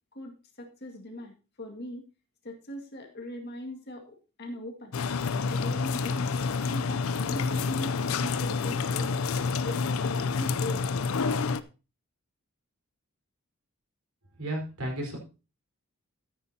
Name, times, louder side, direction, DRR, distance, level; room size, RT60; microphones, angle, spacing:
voice 1, 0.1-2.0 2.4-4.9 5.5-9.3 9.6-10.8, left 1 dB, 50° left, 3 dB, 2.0 m, -40 dB
sound 1, 4.9-11.6, left 4 dB, 70° left, 0.5 m, -28 dB
voice 2, 14.4-15.2, right 1 dB, 90° right, 0 dB, 4.2 m, -33 dB
13.5 x 9.2 x 2.8 m, 0.31 s
head